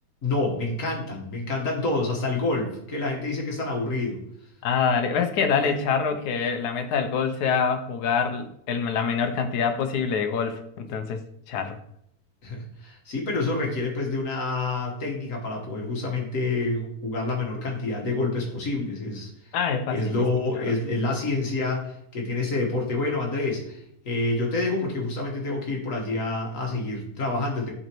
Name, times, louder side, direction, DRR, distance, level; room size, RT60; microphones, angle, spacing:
voice 1, 0.2-4.2 5.6-5.8 12.4-19.3 19.9-27.7, left 2 dB, 55° left, 0 dB, 1.8 m, -28 dB
voice 2, 4.6-11.2 11.5-11.8 19.5-20.1, left 6 dB, 85° left, 7 dB, 1.3 m, -25 dB
10.0 x 4.1 x 3.0 m, 0.73 s
omnidirectional pair, 1.7 m